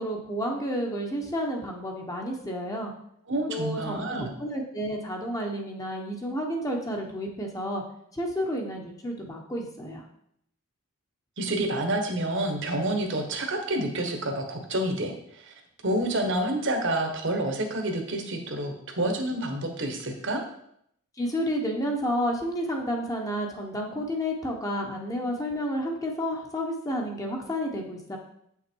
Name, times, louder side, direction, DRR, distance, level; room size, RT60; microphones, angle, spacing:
voice 1, 0.0-2.9 3.5-7.8 8.1-10.0 21.2-28.2, equal, 15° left, 1 dB, 1.0 m, -31 dB
voice 2, 3.3-4.3 11.4-15.5 15.8-20.4, right 1 dB, 55° right, 4 dB, 1.3 m, -28 dB
8.0 x 5.8 x 4.6 m, 0.72 s
head